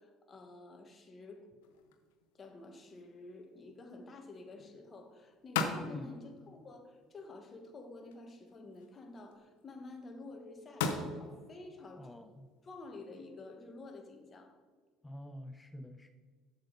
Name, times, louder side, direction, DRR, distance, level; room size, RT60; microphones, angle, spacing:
voice 1, 0.0-1.5 2.3-12.1 12.6-14.5, left 2 dB, 35° left, 4 dB, 1.5 m, -50 dB
sound 1, 1.6-14.4, left 5 dB, 90° left, 0.8 m, -44 dB
voice 2, 12.0-12.5 15.0-16.1, left 1 dB, 15° left, 9 dB, 0.5 m, -47 dB
7.7 x 7.1 x 3.9 m, 1.5 s
supercardioid pair, 80°, 0 cm